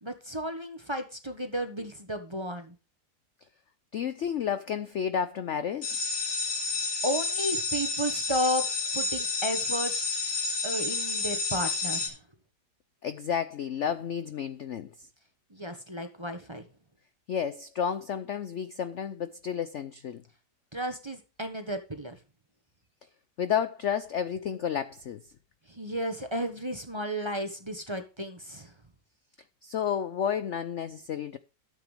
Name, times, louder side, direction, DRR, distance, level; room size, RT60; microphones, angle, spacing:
voice 1, 0.0-2.7 7.0-8.6 8.9-9.9 10.6-12.2 15.5-16.6 20.7-22.2 25.7-28.7, equal, 20° right, 1.1 m, -33 dB
voice 2, 3.9-6.0 13.0-15.1 17.3-20.2 23.4-25.2 29.6-31.4, left 8 dB, 70° left, 0.7 m, -31 dB
sound 1, 5.8-12.1, left 4 dB, 85° left, 3.6 m, -30 dB
13.0 x 8.1 x 3.4 m
omnidirectional pair, 2.0 m